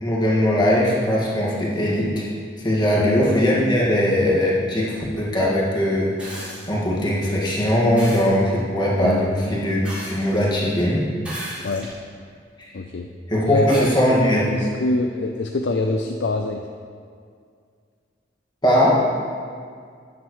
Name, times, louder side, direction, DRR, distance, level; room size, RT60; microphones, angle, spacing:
voice 1, 0.0-2.3 2.6-11.1 12.6-12.7 13.3-14.5 18.6-19.0, equal, 25° left, -5 dB, 1.9 m, -20 dB
sound 1, 6.2-6.7 8.0-8.3 9.8-10.5 11.2-12.0 12.6-12.7 13.7-13.9 15.3-15.4, equal, 5° right, 2.7 m, -35 dB
voice 2, 12.7-13.1 13.4-13.9 14.5-16.7, left 2 dB, 85° left, 4 dB, 0.5 m, -24 dB
12.5 x 9.4 x 3.2 m, 2.2 s
head